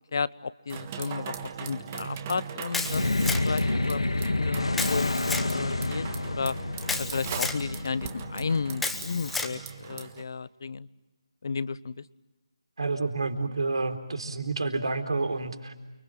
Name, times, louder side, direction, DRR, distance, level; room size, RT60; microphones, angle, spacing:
voice 1, 0.1-6.6 7.0-10.9 11.4-12.0, left 5 dB, 45° left, 19 dB, 0.9 m, -33 dB
sound 1, 0.7-10.2, right 7 dB, 20° right, 1.5 m, -40 dB
Camera, 2.7-3.7 4.7-5.5 6.8-7.6 8.8-9.5, left 3 dB, 5° left, 0.9 m, -32 dB
sound 2, 2.8-9.5, left 2 dB, 85° left, 2.0 m, -29 dB
voice 2, 12.8-15.7, right 3 dB, 65° right, 6 dB, 4.0 m, -29 dB
29.5 x 24.0 x 7.7 m, 1.1 s
figure-of-eight pair, 165°, 3 cm